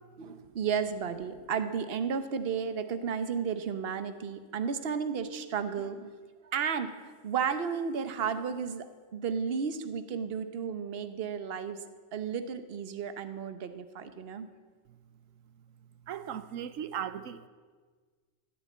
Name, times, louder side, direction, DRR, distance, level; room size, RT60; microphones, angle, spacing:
voice 1, 0.2-6.1 6.4-6.9 7.2-8.9 9.1-11.8 12.1-14.5, right 6 dB, 55° right, 1.1 m, -33 dB
voice 2, 16.1-17.5, right 9 dB, 85° right, 1.1 m, -37 dB
14.5 x 10.5 x 8.3 m
omnidirectional pair, 1.3 m